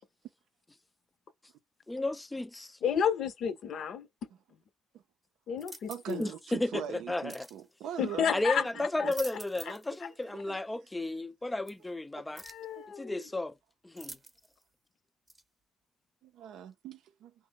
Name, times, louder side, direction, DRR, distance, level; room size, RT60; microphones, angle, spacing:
voice 1, 1.9-2.8 6.2-7.5 8.3-12.4 13.0-13.6 13.8-14.2, left 2 dB, 15° left, 0.3 m, -33 dB
voice 2, 2.8-4.1 5.5-6.2 8.0-9.1 12.4-13.2, left 7 dB, 65° left, 0.6 m, -31 dB
sound 1, 5.6-6.3 7.3-7.6 8.8-9.9 10.2-10.3 11.7-11.8 12.4-12.7 14.0-14.6 15.3-15.4, right 2 dB, 15° right, 0.8 m, -48 dB
voice 3, 5.9-9.1 9.7-9.8 10.2-10.6 12.1-12.2 16.2-17.3, right 10 dB, 85° right, 0.5 m, -42 dB
3.8 x 2.0 x 3.5 m
cardioid pair, 90°, 0 cm